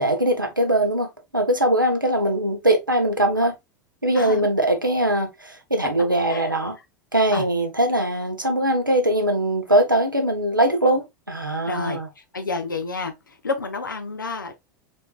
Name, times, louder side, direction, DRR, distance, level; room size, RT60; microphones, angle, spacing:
voice 1, 0.0-3.5 4.0-6.8 7.1-12.1, right 1 dB, 90° right, 1.1 m, -21 dB
voice 2, 4.1-4.5 6.3-6.5 7.3-7.4 11.7-12.0 12.3-14.5, left 4 dB, 80° left, 0.8 m, -29 dB
4.5 x 4.2 x 2.4 m
figure-of-eight pair, 85°, 11 cm